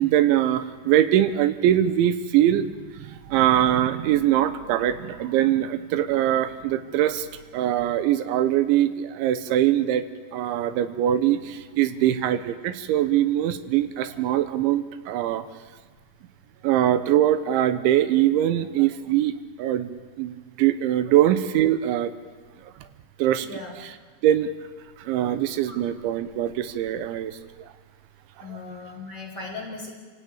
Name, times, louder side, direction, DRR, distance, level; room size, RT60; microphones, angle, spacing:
voice 1, 0.0-2.7 3.0-7.3 7.5-10.1 10.3-15.4 16.6-19.3 19.6-22.1 23.2-23.5 24.2-24.5 25.0-27.4, right 12 dB, 85° right, 11 dB, 3.4 m, -22 dB
voice 2, 23.4-23.7 25.7-25.8 28.4-29.9, left 3 dB, 25° left, -1 dB, 4.2 m, -38 dB
29.5 x 16.5 x 8.8 m, 1.5 s
omnidirectional pair, 5.2 m